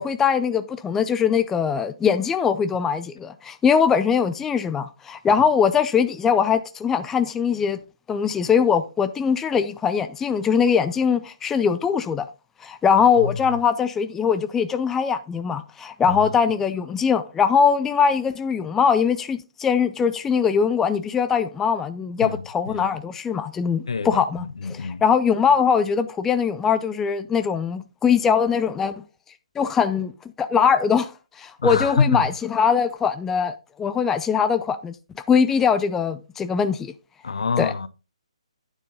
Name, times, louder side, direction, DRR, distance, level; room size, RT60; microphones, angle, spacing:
voice 1, 0.0-7.8 8.1-12.3 12.6-29.0 29.6-30.1 30.4-35.0 35.3-36.9 37.6-37.7, left 6 dB, 10° left, 0.4 m, -21 dB
voice 2, 23.9-24.2 24.6-25.0 31.6-32.2 37.2-37.9, left 5 dB, 65° left, 0.8 m, -24 dB
9.4 x 7.0 x 3.9 m
figure-of-eight pair, 135°, 3 cm